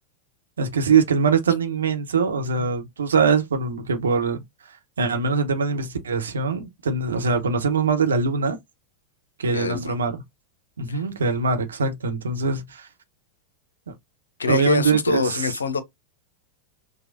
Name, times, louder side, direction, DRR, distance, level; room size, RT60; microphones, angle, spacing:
voice 1, 0.6-8.6 9.4-10.2 10.8-12.9 13.9-14.0 14.5-15.5, right 5 dB, 70° right, 0.9 m, -23 dB
voice 2, 9.5-10.0 10.9-11.0 14.4-15.8, left 5 dB, 75° left, 0.7 m, -25 dB
6.3 x 2.2 x 2.6 m
figure-of-eight pair, 90°, 0 cm